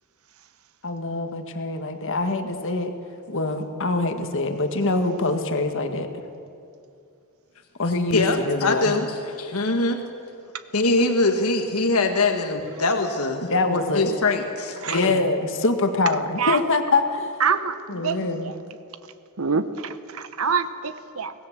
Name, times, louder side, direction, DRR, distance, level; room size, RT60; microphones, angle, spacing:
voice 1, 0.8-2.9 3.3-6.1 7.8-8.9 13.4-14.2 14.9-17.3 17.9-18.5, left 3 dB, 60° left, 6 dB, 1.8 m, -24 dB
voice 2, 8.1-10.0 10.7-15.2, left 2 dB, 75° left, 5 dB, 1.6 m, -23 dB
voice 3, 17.4-18.5 19.4-21.3, right 6 dB, 70° right, 11 dB, 1.0 m, -26 dB
24.5 x 18.5 x 7.3 m, 2.5 s
head